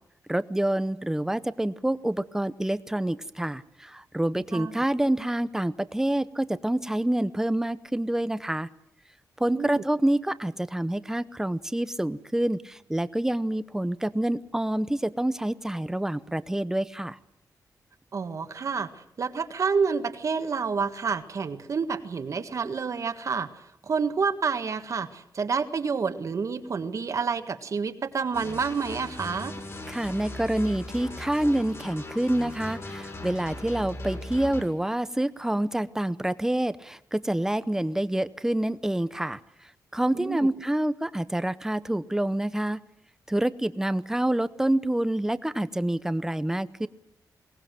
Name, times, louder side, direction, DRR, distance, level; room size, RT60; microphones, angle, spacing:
voice 1, 0.3-8.7 9.4-17.2 29.9-39.4 39.9-42.8 43.3-46.9, right 1 dB, 5° right, 15 dB, 0.8 m, -27 dB
voice 2, 9.5-9.8 18.1-23.5 23.8-29.6 40.1-40.5, right 5 dB, 50° right, 9 dB, 1.6 m, -29 dB
sound 1, 28.3-34.6, left 1 dB, 40° left, 5.8 m, -38 dB
22.5 x 19.0 x 7.7 m, 0.78 s
wide cardioid pair, 140°, 7 cm